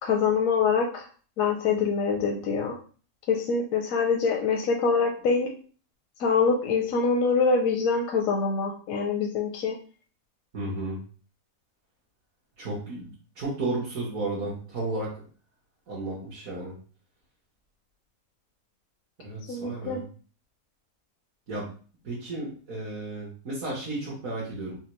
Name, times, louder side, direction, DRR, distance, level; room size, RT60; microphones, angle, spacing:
voice 1, 0.0-1.0 1.4-2.7 3.3-5.5 6.2-9.7 19.5-20.0, left 5 dB, 80° left, 1 dB, 1.0 m, -25 dB
voice 2, 10.5-11.0 12.6-13.1 13.3-15.1 15.9-16.7 19.2-20.0 21.5-21.6 22.0-24.7, right 2 dB, 75° right, -8 dB, 1.5 m, -33 dB
4.2 x 2.2 x 2.9 m, 0.40 s
omnidirectional pair, 1.5 m